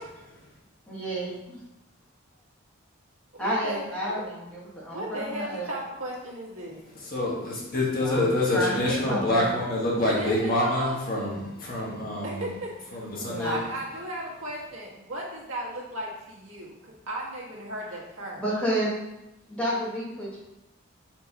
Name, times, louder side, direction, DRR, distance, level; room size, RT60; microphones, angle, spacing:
voice 1, 0.9-1.6 3.4-5.7 8.0-9.5 13.2-13.6 18.4-18.9 19.5-20.4, equal, 5° left, -8 dB, 1.8 m, -30 dB
voice 2, 3.3-4.2 4.9-6.8 10.0-10.9 12.2-18.4, right 1 dB, 80° right, -4 dB, 1.6 m, -35 dB
voice 3, 6.9-12.5 12.9-13.6, left 1 dB, 45° left, -4 dB, 1.5 m, -26 dB
4.4 x 4.1 x 5.4 m, 0.92 s
head